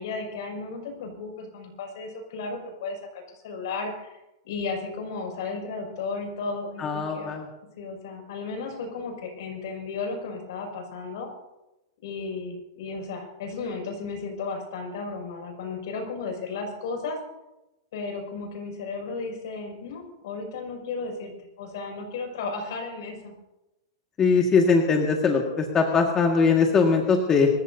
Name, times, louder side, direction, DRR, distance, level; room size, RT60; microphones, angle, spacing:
voice 1, 0.0-7.4 7.8-11.3 12.0-17.2 17.9-23.3, left 4 dB, 65° left, 2 dB, 6.4 m, -34 dB
voice 2, 6.8-7.5 24.2-27.5, left 5 dB, 20° left, 1 dB, 1.9 m, -21 dB
27.0 x 15.0 x 2.8 m, 0.98 s
hypercardioid pair, 140°, 2 cm